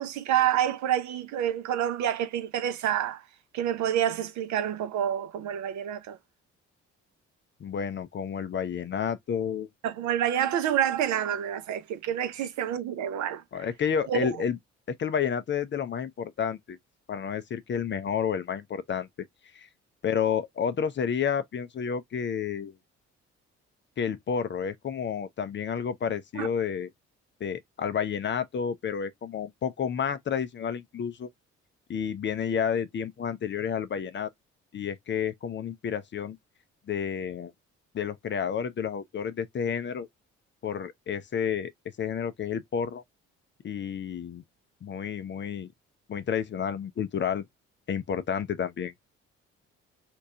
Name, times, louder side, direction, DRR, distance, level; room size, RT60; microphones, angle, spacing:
voice 1, 0.0-3.2 3.5-6.2 9.8-13.6 14.1-14.3 26.4-26.5, right 10 dB, 55° right, 0.6 m, -28 dB
voice 2, 7.6-9.7 13.5-14.6 15.0-16.8 17.1-19.1 19.5-19.7 20.0-22.7 24.0-26.9 27.4-31.3 31.9-34.3 34.7-36.4 36.9-37.5 37.9-40.1 40.6-41.7 42.0-43.0 43.6-44.4 44.8-45.7 46.1-47.5 47.9-48.9, left 7 dB, 30° left, 0.5 m, -30 dB
3.0 x 2.2 x 3.6 m
figure-of-eight pair, 45°, 36 cm